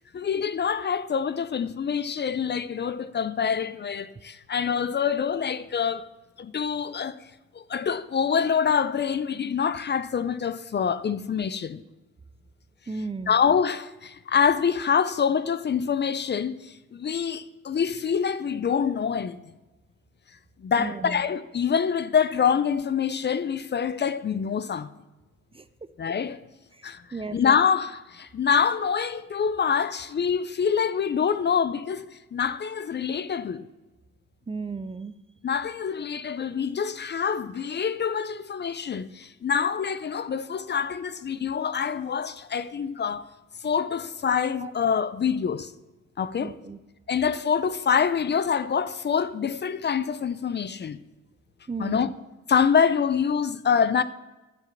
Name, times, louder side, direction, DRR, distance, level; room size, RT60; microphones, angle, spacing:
voice 1, 0.1-6.1 6.4-7.2 7.5-11.8 13.3-19.4 20.6-24.9 26.0-26.4 26.8-27.0 27.3-33.6 35.4-43.2 43.6-45.7 46.2-46.5 47.1-51.0 51.8-52.1 52.5-54.0, left 7 dB, 35° left, 0.5 m, -25 dB
voice 2, 12.9-13.3 20.8-21.2 25.5-25.6 27.1-27.4 34.5-35.1 44.6-44.7 46.4-46.8 51.7-52.1, right 4 dB, 20° right, 0.6 m, -34 dB
9.6 x 7.2 x 7.3 m
cardioid pair, 90°, 30 cm